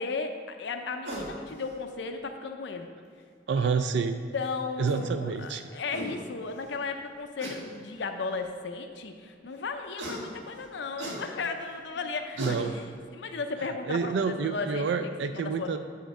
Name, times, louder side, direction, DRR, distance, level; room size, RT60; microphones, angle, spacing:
voice 1, 0.0-2.9 3.6-3.7 4.3-15.0 15.3-15.8, left 4 dB, 70° left, 6 dB, 0.6 m, -35 dB
sound 1, 1.0-1.3 2.8-2.9 4.4-4.5 4.8-5.1 5.6-5.7 5.9-6.1 7.4-7.6 8.4-8.5 10.0-10.2 11.0-11.2 11.9-12.0 12.4-12.6, equal, 90° right, 1.6 m, -36 dB
voice 2, 3.5-4.2 4.8-5.6 12.4-12.7 13.9-15.8, right 5 dB, 70° right, 9 dB, 0.4 m, -28 dB
8.0 x 6.4 x 4.7 m, 2.1 s
head